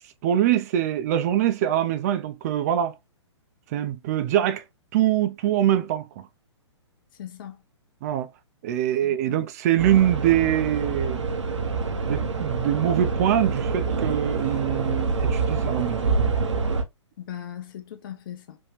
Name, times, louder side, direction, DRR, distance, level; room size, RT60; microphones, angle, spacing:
voice 1, 0.2-2.9 3.7-4.6 4.9-6.1 8.0-8.3 8.6-11.2 12.1-16.1, right 11 dB, 35° right, 0.4 m, -23 dB
voice 2, 7.1-7.6 9.0-9.4 17.2-18.6, left 10 dB, 45° left, 0.7 m, -39 dB
sound 1, 9.8-16.8, right 4 dB, 75° right, 0.7 m, -26 dB
3.4 x 2.2 x 2.8 m
figure-of-eight pair, 120°, 15 cm